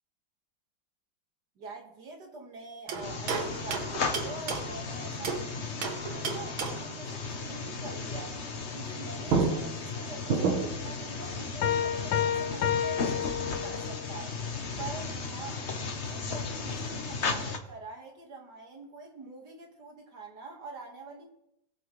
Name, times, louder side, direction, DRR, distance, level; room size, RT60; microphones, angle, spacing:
voice 1, 1.6-8.4 8.7-14.4 14.8-15.7 16.0-21.3, right 3 dB, 60° right, 2 dB, 2.4 m, -45 dB
sound 1, 2.9-5.5 5.8-7.0 8.9-9.0 9.3-10.9, right 4 dB, 90° right, 2.0 m, -31 dB
sound 2, 3.0-17.6, left 4 dB, 40° left, 1.2 m, -35 dB
Piano, 11.6-14.1, left 8 dB, 80° left, 1.5 m, -30 dB
21.0 x 8.0 x 3.3 m, 0.82 s
omnidirectional pair, 2.1 m